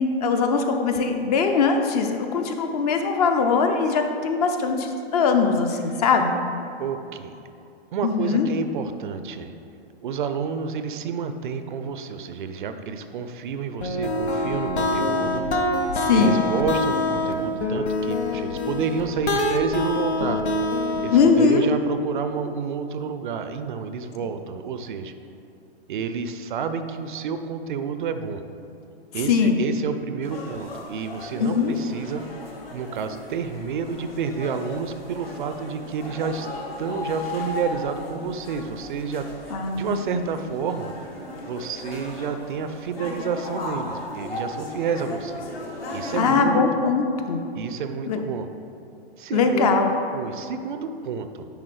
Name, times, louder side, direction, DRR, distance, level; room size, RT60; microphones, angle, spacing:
voice 1, 0.0-6.4 8.0-8.5 15.9-16.4 21.1-21.7 29.1-29.6 31.4-31.8 39.5-40.2 46.1-47.4 48.1-48.2 49.3-49.9, left 5 dB, 40° left, 5 dB, 0.5 m, -21 dB
voice 2, 6.8-7.3 7.9-9.5 10.0-15.4 16.1-20.4 21.0-25.1 25.9-28.4 29.1-32.2 32.7-36.5 36.8-40.9 41.5-45.4 45.9-46.6 47.6-48.5 49.2-49.7 50.1-51.5, right 6 dB, 50° right, 9 dB, 0.4 m, -29 dB
sound 1, 13.8-21.4, left 2 dB, 90° left, 0.7 m, -25 dB
sound 2, 30.2-46.3, left 2 dB, 65° left, 1.3 m, -36 dB
10.0 x 3.5 x 3.3 m, 2.7 s
figure-of-eight pair, 115°, 32 cm